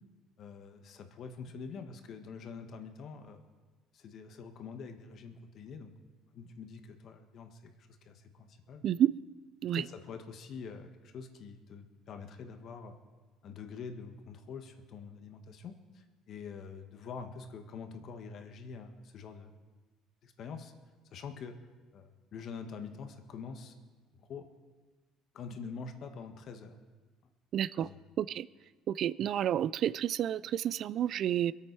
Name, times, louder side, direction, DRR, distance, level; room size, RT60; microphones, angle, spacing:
voice 1, 0.4-3.5 3.9-5.9 6.3-8.8 9.7-13.0 13.4-19.5 20.2-20.7 21.1-21.6 21.9-23.7 24.1-24.4 25.3-26.8 27.8-28.0, left 5 dB, 55° left, 6 dB, 1.5 m, -45 dB
voice 2, 8.8-9.1 9.6-9.8 27.5-27.9 28.2-28.5 28.9-31.5, right 10 dB, 60° right, 20 dB, 0.3 m, -30 dB
23.0 x 8.8 x 4.7 m, 1.3 s
supercardioid pair, 95°, 0 cm